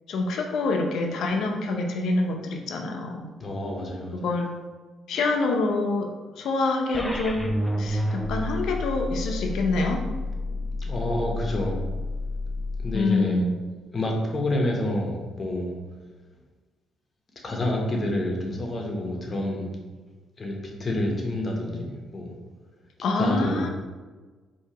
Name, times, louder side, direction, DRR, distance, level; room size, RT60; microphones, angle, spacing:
voice 1, 0.1-3.3 4.1-4.5 5.1-7.5 7.8-10.0 10.5-10.6 12.9-13.5 23.0-23.7, left 3 dB, 75° left, 3 dB, 0.5 m, -26 dB
voice 2, 3.4-4.2 5.1-5.3 10.8-11.8 12.8-13.4 13.9-15.7 17.4-19.7 20.4-22.3 23.2-23.7, left 1 dB, 35° left, 0 dB, 0.9 m, -28 dB
sound 1, 6.9-13.0, left 1 dB, 10° left, 0.5 m, -30 dB
4.5 x 2.8 x 2.9 m, 1.3 s
cardioid pair, 90°, 0 cm